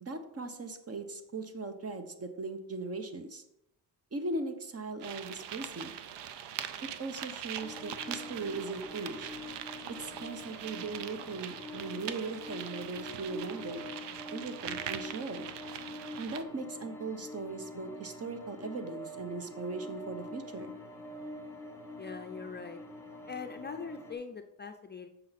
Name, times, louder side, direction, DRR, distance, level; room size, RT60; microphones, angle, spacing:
voice 1, 0.0-3.4 4.1-5.9 6.8-9.3 9.9-13.9 14.3-15.5 16.2-20.7, right 3 dB, 35° right, 8 dB, 1.0 m, -39 dB
sound 1, 5.0-16.4, right 9 dB, 80° right, 0.6 m, -42 dB
sound 2, 7.6-24.1, left 1 dB, 5° left, 1.5 m, -46 dB
voice 2, 22.0-22.8 23.3-25.1, left 5 dB, 25° left, 5 dB, 0.5 m, -42 dB
7.4 x 5.6 x 4.1 m, 0.83 s
cardioid pair, 90°, 42 cm